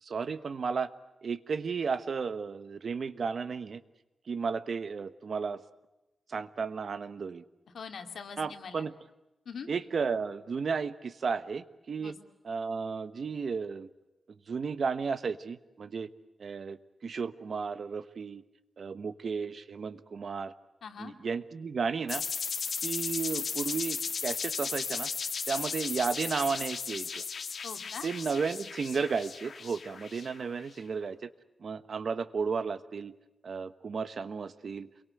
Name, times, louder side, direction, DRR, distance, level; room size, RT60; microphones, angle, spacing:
voice 1, 0.0-0.9 1.2-3.8 4.3-5.6 6.3-7.4 8.4-8.9 9.7-12.2 12.4-13.9 14.5-16.1 16.4-18.4 18.8-20.5 21.0-22.2 22.8-25.1 25.5-27.2 28.0-31.3 31.6-33.1 33.4-34.9, right 5 dB, 55° right, 12 dB, 1.2 m, -33 dB
voice 2, 7.7-8.9 9.5-9.7 12.0-12.2 20.8-21.1 27.6-28.1, left 6 dB, 85° left, 5 dB, 2.5 m, -42 dB
sound 1, 22.1-30.6, left 5 dB, 60° left, 2.0 m, -36 dB
29.0 x 23.0 x 7.9 m, 0.99 s
wide cardioid pair, 140°, 0 cm